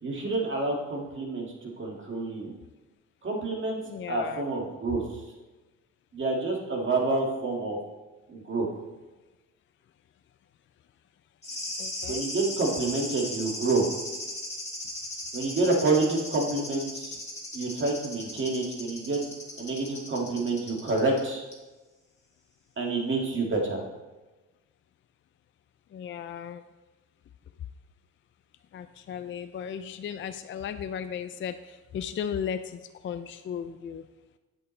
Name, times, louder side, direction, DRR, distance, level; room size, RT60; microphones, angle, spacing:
voice 1, 0.0-2.5 3.2-3.8 4.1-5.0 6.1-7.8 8.3-8.7 12.1-13.9 15.3-17.2 17.5-19.2 19.6-21.4 22.8-23.8, right 3 dB, 40° right, -1 dB, 2.3 m, -28 dB
voice 2, 3.9-4.4 11.8-12.3 25.9-26.6 28.7-34.1, left 8 dB, 40° left, 10 dB, 0.4 m, -36 dB
sound 1, 11.4-21.2 21.5-21.6, left 1 dB, 20° left, 2.3 m, -37 dB
8.2 x 8.0 x 3.3 m, 1.1 s
cardioid pair, 90°, 30 cm